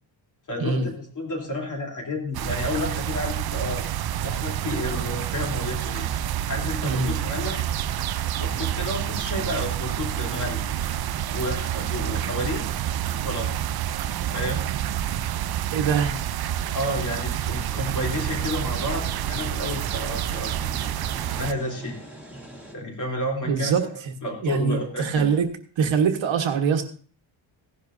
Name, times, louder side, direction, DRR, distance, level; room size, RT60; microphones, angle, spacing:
voice 1, 0.5-3.9 4.2-6.1 6.5-7.7 8.4-10.7 11.3-12.6 13.1-13.5 14.3-14.6 16.7-20.9 21.3-22.0 22.7-23.9 24.2-25.3, left 1 dB, 40° left, -1 dB, 3.3 m, -31 dB
sound 1, 2.3-21.5, right 11 dB, 55° right, 0.5 m, -28 dB
voice 2, 15.7-16.2 23.4-24.1 24.4-25.5 25.8-26.8, right 6 dB, 70° right, 5 dB, 1.4 m, -23 dB
sound 2, 17.7-22.7, right 1 dB, 5° right, 2.5 m, -43 dB
16.0 x 11.0 x 2.7 m, 0.43 s
wide cardioid pair, 165°, 47 cm